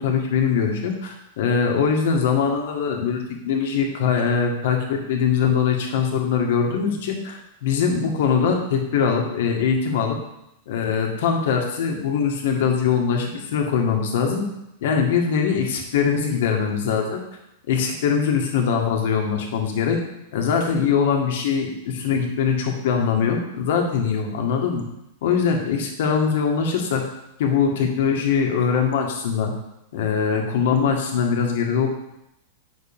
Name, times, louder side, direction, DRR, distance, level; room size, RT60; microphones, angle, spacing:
voice 1, 0.0-10.2 10.7-14.5 14.8-17.2 17.7-20.0 20.3-24.9 25.2-27.0 27.4-29.5 29.9-31.9, left 6 dB, 55° left, 2 dB, 1.6 m, -22 dB
9.5 x 6.1 x 3.5 m, 0.83 s
supercardioid pair, 175°, 0 cm